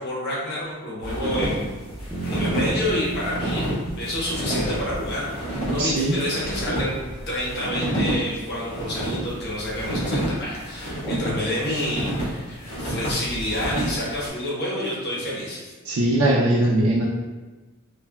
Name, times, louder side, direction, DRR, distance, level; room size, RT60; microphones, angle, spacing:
voice 1, 0.0-1.7 2.2-15.7, left 1 dB, 50° left, -6 dB, 0.9 m, -28 dB
sound 1, 1.0-14.3, right 1 dB, 75° left, 1.4 m, -29 dB
sound 2, 2.1-6.1, right 2 dB, 5° left, 0.4 m, -35 dB
voice 2, 5.8-6.3 15.8-17.1, right 1 dB, 65° right, -6 dB, 0.4 m, -20 dB
3.2 x 2.1 x 2.2 m, 1.3 s
head